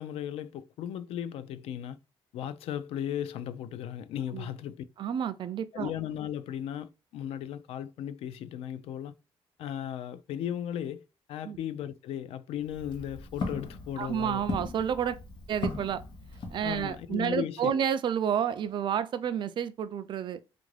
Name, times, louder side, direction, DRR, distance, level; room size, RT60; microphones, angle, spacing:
voice 1, 0.0-2.0 2.3-4.8 5.7-9.1 9.6-11.0 11.3-14.5 16.6-17.9, left 10 dB, 85° left, 0.4 m, -36 dB
voice 2, 5.0-5.9 11.4-11.6 14.0-15.2 15.5-16.0 16.5-20.4, right 8 dB, 55° right, 0.4 m, -30 dB
Walk footsteps, 12.6-17.1, left 3 dB, 55° left, 1.0 m, -38 dB
3.5 x 2.5 x 3.1 m
cardioid pair, 125°, 10 cm